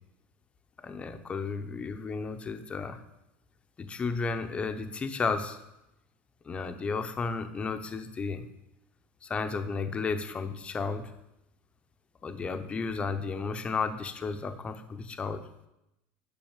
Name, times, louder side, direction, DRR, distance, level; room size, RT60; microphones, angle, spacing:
voice 1, 0.8-3.0 3.8-5.6 6.4-8.5 9.2-11.1 12.2-15.4, left 4 dB, 15° left, 8 dB, 0.7 m, -33 dB
10.5 x 6.0 x 7.3 m, 0.91 s
cardioid pair, 160°, 6 cm